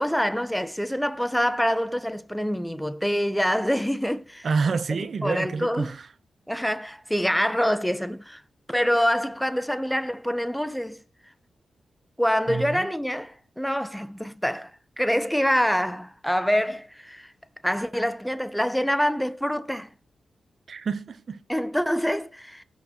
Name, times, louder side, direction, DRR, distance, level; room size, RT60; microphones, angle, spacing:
voice 1, 0.0-4.5 5.2-5.9 6.5-8.4 8.7-11.0 12.2-14.7 15.0-17.3 17.6-19.9 21.5-22.6, equal, 5° left, 1.0 m, -25 dB
voice 2, 4.4-6.1 12.5-12.9 20.7-21.4, right 4 dB, 60° right, 1.0 m, -28 dB
18.0 x 6.1 x 3.1 m
cardioid pair, 50°, 0 cm